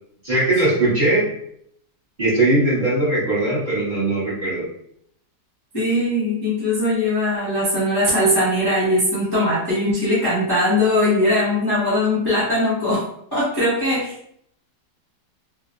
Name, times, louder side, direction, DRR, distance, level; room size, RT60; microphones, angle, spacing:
voice 1, 0.2-1.3 2.2-4.6, right 2 dB, 30° right, -10 dB, 1.3 m, -19 dB
voice 2, 5.7-13.0 13.3-14.3, left 1 dB, 15° left, -10 dB, 0.9 m, -20 dB
3.3 x 2.6 x 2.4 m, 0.71 s
omnidirectional pair, 1.9 m